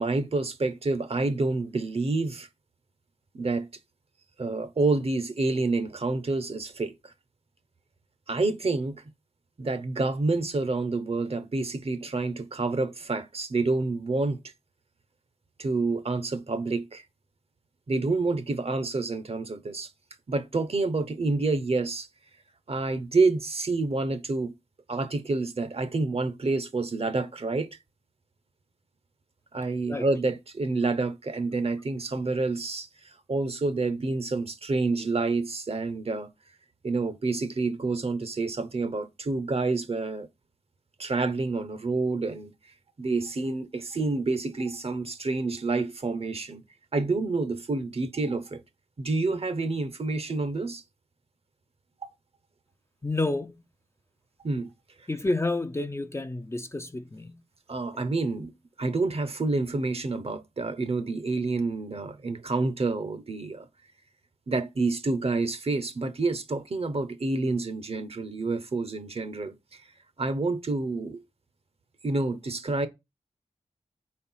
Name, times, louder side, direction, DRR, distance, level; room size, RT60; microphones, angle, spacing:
voice 1, 0.0-2.5 3.3-3.7 4.4-7.1 8.3-9.0 9.6-14.4 15.6-17.0 17.9-19.9 20.3-22.1 22.7-24.5 24.9-27.7 29.5-32.9 33.3-36.3 36.8-40.3 41.0-42.5 43.0-46.6 46.9-48.6 49.0-50.8 54.4-54.7 57.7-58.5 58.8-63.7 64.5-69.8 70.2-71.2 72.0-72.9, right 3 dB, 50° right, 0.8 m, -28 dB
voice 2, 53.0-53.6 55.1-57.4, left 2 dB, 20° left, 0.4 m, -30 dB
4.4 x 4.4 x 5.6 m
wide cardioid pair, 100°, 13 cm